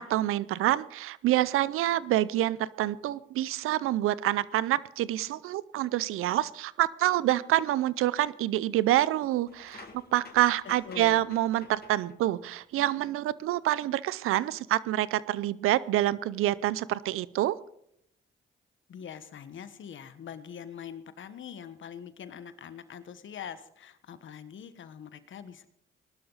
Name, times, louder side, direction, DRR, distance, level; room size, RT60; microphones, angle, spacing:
voice 1, 0.0-9.9 10.1-17.6, right 14 dB, 85° right, 19 dB, 0.6 m, -27 dB
sound 1, 9.5-12.4 12.8-13.1 14.7-14.8 16.3-16.5, left 4 dB, 50° left, 2.3 m, -52 dB
voice 2, 10.8-11.3 18.9-25.7, left 8 dB, 65° left, 12 dB, 1.3 m, -43 dB
19.0 x 12.0 x 4.0 m, 0.72 s
supercardioid pair, 60°, 21 cm